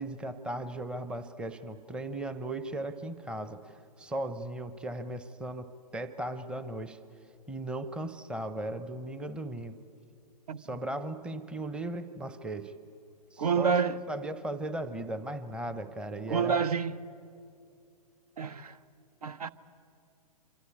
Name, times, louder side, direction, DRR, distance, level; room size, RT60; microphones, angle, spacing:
voice 1, 0.0-7.0 7.5-9.8 10.6-12.7 13.3-13.8 14.1-16.7, right 1 dB, 5° right, 0.8 m, -37 dB
voice 2, 13.4-14.0 16.3-17.0 18.4-18.8 19.2-19.5, right 6 dB, 65° right, 1.1 m, -28 dB
26.0 x 25.5 x 8.6 m
figure-of-eight pair, 120°, 21 cm